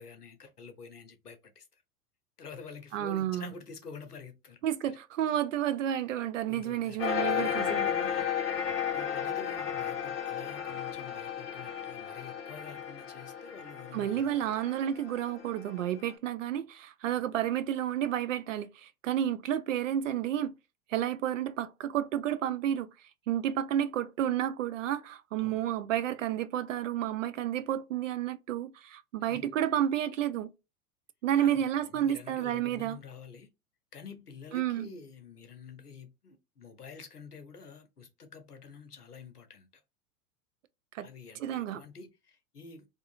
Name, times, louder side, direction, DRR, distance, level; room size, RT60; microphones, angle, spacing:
voice 1, 0.0-1.8 2.4-4.6 4.9-5.0 6.5-8.3 8.9-14.6 25.4-25.7 29.3-29.5 31.3-33.5 33.9-39.7 41.0-42.9, left 5 dB, 90° left, 0.7 m, -48 dB
voice 2, 2.9-3.5 4.6-7.9 13.9-20.5 20.9-22.9 23.3-30.5 31.2-33.0 34.5-34.9 40.9-41.1 41.4-41.8, right 11 dB, 60° right, 0.5 m, -31 dB
sound 1, 7.0-16.0, left 8 dB, 45° left, 0.6 m, -34 dB
2.7 x 2.5 x 2.3 m
figure-of-eight pair, 95°, 45 cm